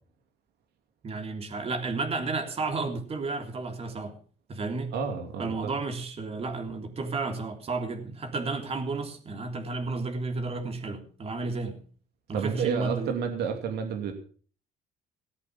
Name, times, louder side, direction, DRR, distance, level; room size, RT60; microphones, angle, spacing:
voice 1, 1.0-4.2 4.5-4.9 5.4-11.8 12.3-13.1, right 3 dB, 35° right, 4 dB, 3.4 m, -32 dB
voice 2, 4.9-5.7 12.3-14.1, right 6 dB, 75° right, 5 dB, 2.8 m, -30 dB
18.5 x 8.3 x 7.4 m, 0.43 s
cardioid pair, 110°, 17 cm